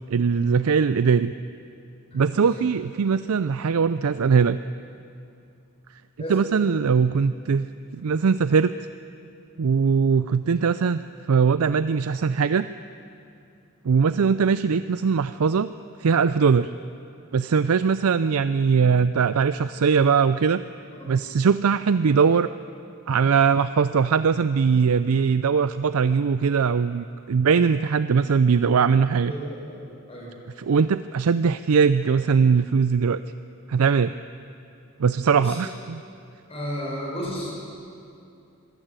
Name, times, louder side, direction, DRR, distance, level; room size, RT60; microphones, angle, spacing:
voice 1, 0.1-1.3 2.1-4.6 6.3-7.7 7.9-8.7 9.6-11.0 11.3-12.7 13.8-15.7 16.0-16.7 17.3-20.6 21.1-22.5 23.1-29.3 30.6-33.2 33.7-34.1 35.0-36.0, right 5 dB, 80° right, 13 dB, 0.5 m, -21 dB
voice 2, 2.1-2.5 6.2-6.4 20.8-21.1 29.3-29.8 30.1-30.3 35.4-35.6 36.5-37.5, equal, 25° left, -3 dB, 7.2 m, -33 dB
25.0 x 15.5 x 9.0 m, 2.6 s
head